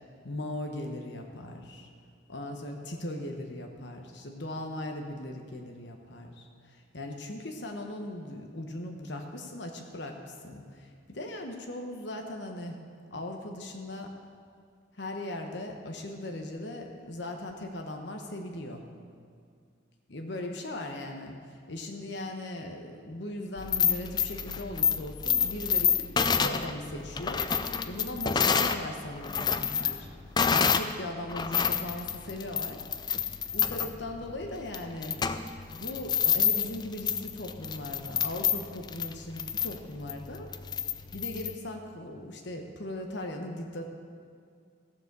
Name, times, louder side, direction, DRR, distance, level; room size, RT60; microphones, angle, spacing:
voice 1, 0.2-1.9 2.3-12.8 13.1-14.1 15.0-18.8 20.1-27.5 27.9-30.1 30.4-32.8 33.5-35.2 35.7-40.5 41.1-43.8, left 1 dB, 60° left, 3 dB, 1.1 m, -39 dB
sound 1, 23.6-28.8 29.2-30.9 31.3-41.5, left 7 dB, 20° left, 0.4 m, -28 dB
15.0 x 7.3 x 6.8 m, 2.2 s
head